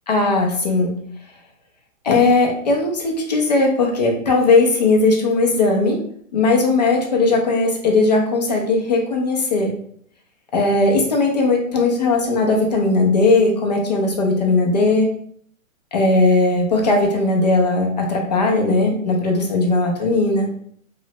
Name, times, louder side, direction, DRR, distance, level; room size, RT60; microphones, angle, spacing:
voice 1, 0.1-0.9 2.0-6.0 6.3-9.7 10.5-15.1 15.9-20.5, left 3 dB, 35° left, 1 dB, 0.4 m, -18 dB
3.1 x 2.1 x 2.7 m, 0.62 s
hypercardioid pair, 160°, 41 cm